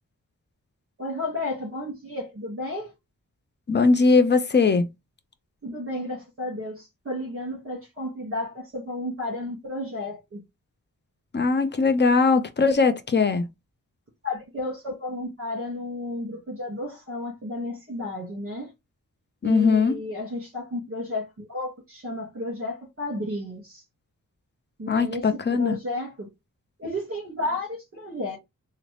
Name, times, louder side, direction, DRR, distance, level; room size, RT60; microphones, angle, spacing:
voice 1, 1.0-2.9 5.6-10.4 14.2-18.7 19.4-23.8 24.8-25.2 25.5-26.3 26.8-28.4, left 1 dB, 40° right, 1.9 m, -32 dB
voice 2, 3.7-4.9 11.3-13.5 19.4-20.0 24.9-25.8, left 4 dB, 35° left, 0.6 m, -20 dB
3.8 x 2.1 x 3.3 m
wide cardioid pair, 95°, 33 cm